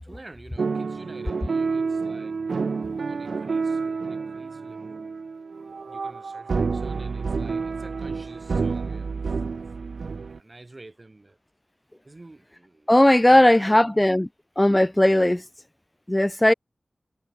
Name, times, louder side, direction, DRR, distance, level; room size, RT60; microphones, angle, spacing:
voice 1, 0.0-2.4 3.0-5.1 5.8-9.4 10.3-11.4 12.0-14.1, right 2 dB, 35° right, 6.6 m, -48 dB
sound 1, 0.6-10.4, right 4 dB, 90° right, 0.7 m, -29 dB
voice 2, 12.9-14.3 14.6-15.4 16.1-16.5, left 1 dB, 15° left, 0.4 m, -17 dB
wide cardioid pair, 90°, 0 cm